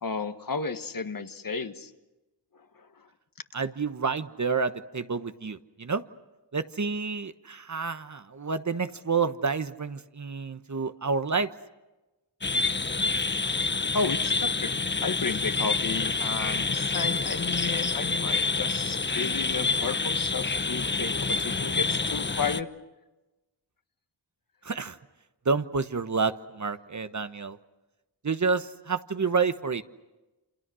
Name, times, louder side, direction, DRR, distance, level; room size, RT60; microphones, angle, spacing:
voice 1, 0.0-1.9 2.7-3.1 13.9-22.7, left 4 dB, 55° left, 8 dB, 1.6 m, -33 dB
voice 2, 3.5-6.0 6.5-11.5 24.6-25.0 25.4-27.6 28.2-29.8, right 5 dB, 45° right, 10 dB, 1.2 m, -29 dB
sound 1, 12.4-22.6, left 4 dB, 25° left, 0.9 m, -27 dB
28.5 x 26.5 x 6.4 m, 1.1 s
cardioid pair, 50°, 41 cm